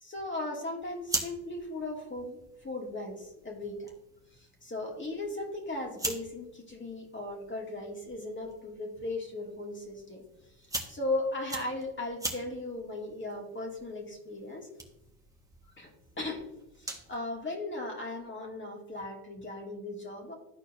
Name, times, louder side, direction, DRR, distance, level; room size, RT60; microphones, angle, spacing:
voice 1, 0.0-3.9 4.3-10.2 10.6-14.7 15.8-15.9 16.2-16.4 16.8-20.3, left 2 dB, 20° left, 0 dB, 2.4 m, -37 dB
sound 1, 0.8-17.2, right 2 dB, 5° right, 1.4 m, -43 dB
13.0 x 4.4 x 2.7 m, 0.89 s
hypercardioid pair, 70°, 50 cm